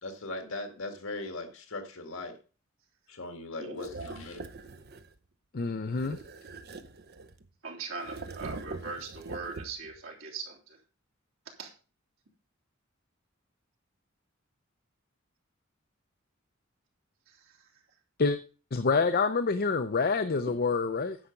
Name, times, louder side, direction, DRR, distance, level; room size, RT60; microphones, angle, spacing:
voice 1, 0.0-2.3 3.1-4.5, left 2 dB, 80° left, 6 dB, 2.0 m, -39 dB
voice 2, 3.6-4.2 7.6-10.8 11.6-11.7 17.3-17.6, right 4 dB, 80° right, -2 dB, 3.4 m, -40 dB
sound 1, 3.8-5.2 5.9-7.5 8.0-10.0, right 3 dB, 55° right, 0.8 m, -43 dB
voice 3, 5.5-6.2 18.2-18.4 18.7-21.2, left 4 dB, 50° left, 10 dB, 0.6 m, -27 dB
10.0 x 7.0 x 5.2 m, 0.37 s
head